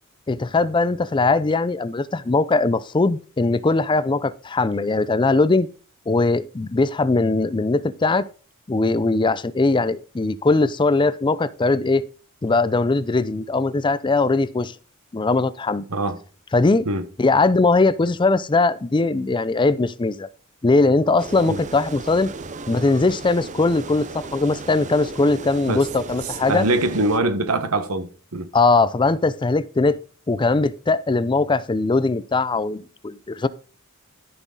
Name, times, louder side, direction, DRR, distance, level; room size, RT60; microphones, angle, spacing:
voice 1, 0.3-5.7 6.1-8.3 8.7-12.0 12.4-14.7 15.1-15.8 16.5-16.9 17.2-20.3 20.6-22.3 22.7-26.7 28.5-30.0 30.3-33.5, left 3 dB, 20° left, 0.4 m, -20 dB
sound 1, 21.2-27.2, right 3 dB, 35° right, 0.7 m, -36 dB
voice 2, 26.5-28.5, right 2 dB, 85° right, 1.3 m, -23 dB
13.5 x 6.1 x 3.9 m
head